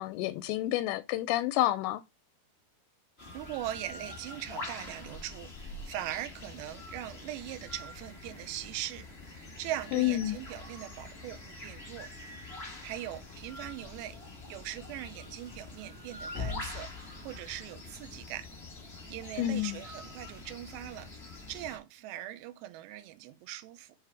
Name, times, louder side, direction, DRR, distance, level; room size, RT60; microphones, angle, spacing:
voice 1, 0.0-2.0 9.9-10.4 19.4-19.8, left 14 dB, 85° left, 2.7 m, -29 dB
sound 1, 3.2-21.8, left 3 dB, 40° left, 0.9 m, -44 dB
voice 2, 3.3-12.1 12.8-14.2 14.5-16.9 17.2-18.5 19.1-21.1 21.5-23.9, right 13 dB, 85° right, 2.8 m, -41 dB
7.1 x 3.3 x 4.7 m
omnidirectional pair, 5.0 m